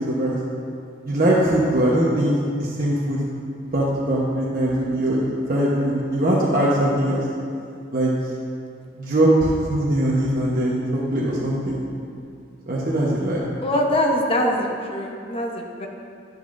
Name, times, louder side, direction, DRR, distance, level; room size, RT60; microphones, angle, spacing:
voice 1, 1.1-2.3 2.6-3.2 3.7-5.2 5.5-7.2 7.9-8.1 9.0-10.8 11.1-11.8 12.7-13.4, right 1 dB, 45° right, -6 dB, 1.1 m, -21 dB
voice 2, 13.6-15.9, left 1 dB, 30° left, 0 dB, 0.9 m, -23 dB
11.0 x 9.7 x 2.6 m, 2.4 s
head